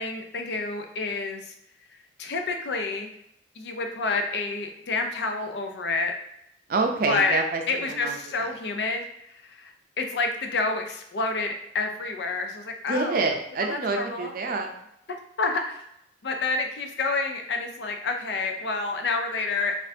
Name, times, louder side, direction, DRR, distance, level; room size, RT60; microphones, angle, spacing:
voice 1, 0.0-1.5 2.2-3.1 3.6-6.1 7.0-7.4 7.7-9.0 9.3-13.2 13.7-14.3 15.4-15.8 16.2-19.8, left 3 dB, 70° left, 4 dB, 0.5 m, -28 dB
voice 2, 6.7-7.6 8.0-8.1 8.4-8.5 12.9-14.7, right 3 dB, 55° right, 3 dB, 0.5 m, -26 dB
4.2 x 2.5 x 2.7 m, 0.77 s
head